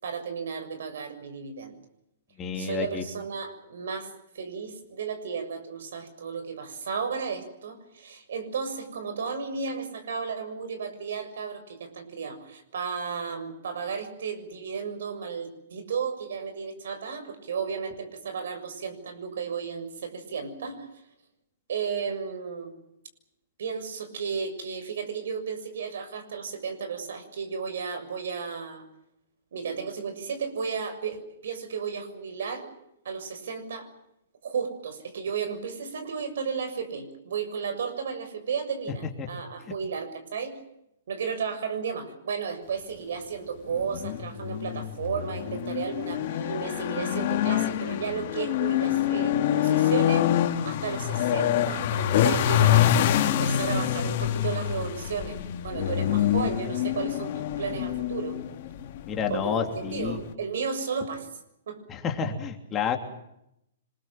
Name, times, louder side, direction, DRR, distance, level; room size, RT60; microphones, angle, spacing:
voice 1, 0.0-1.7 2.6-4.1 4.4-20.9 21.7-22.7 23.6-28.8 29.5-31.2 31.4-32.7 33.1-33.9 34.4-40.6 41.1-50.3 50.6-52.9 53.2-55.4 55.6-58.4 59.3-61.3 61.7-61.8, right 6 dB, 70° right, 9 dB, 6.9 m, -33 dB
voice 2, 2.4-3.0 39.2-39.3 39.6-39.7 59.1-60.2 61.9-63.0, left 7 dB, 20° left, 3 dB, 3.0 m, -30 dB
sound 1, 43.7-60.3, left 11 dB, 45° left, 2.9 m, -26 dB
26.5 x 22.0 x 7.6 m, 0.80 s
hypercardioid pair, 160°, 0 cm